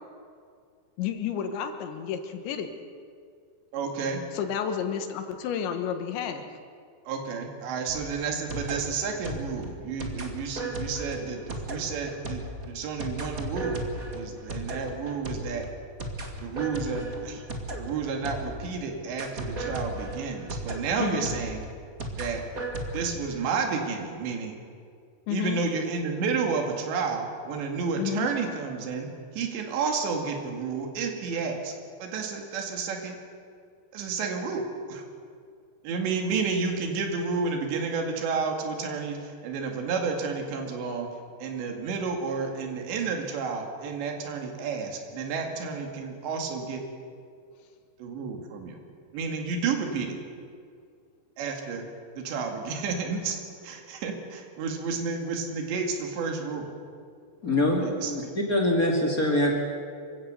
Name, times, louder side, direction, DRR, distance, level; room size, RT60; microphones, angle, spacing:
voice 1, 1.0-2.7 4.3-6.4 21.0-21.3 25.3-25.6 28.0-28.3, left 8 dB, 85° left, 7 dB, 3.8 m, -31 dB
voice 2, 3.7-4.2 7.1-13.8 14.1-15.6 16.4-17.4 17.8-21.6 22.1-22.4 22.9-24.5 25.3-29.1 29.3-31.7 32.0-33.2 33.9-35.0 35.8-41.1 41.4-46.8 48.0-48.8 49.1-50.2 51.4-51.8 52.2-53.4 53.6-56.7 57.8-58.1, right 5 dB, 80° right, 3 dB, 4.4 m, -31 dB
sound 1, 7.9-18.7 19.2-23.1, right 1 dB, 45° right, 1.1 m, -36 dB
voice 3, 57.4-58.2 58.5-59.5, left 1 dB, 30° left, -1 dB, 1.7 m, -24 dB
26.5 x 16.5 x 6.9 m, 2.2 s
omnidirectional pair, 5.1 m